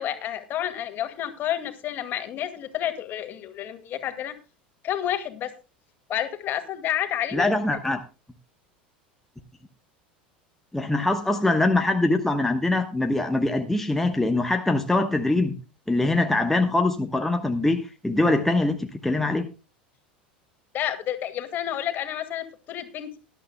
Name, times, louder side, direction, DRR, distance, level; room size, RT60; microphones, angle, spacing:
voice 1, 0.0-4.3 4.8-5.5 6.1-7.5 20.7-23.2, left 11 dB, 40° left, 9 dB, 2.1 m, -30 dB
voice 2, 7.3-8.0 10.7-15.6 15.9-19.5, left 2 dB, 5° left, 5 dB, 1.1 m, -23 dB
20.0 x 11.5 x 2.2 m, 0.31 s
figure-of-eight pair, 75°, 5 cm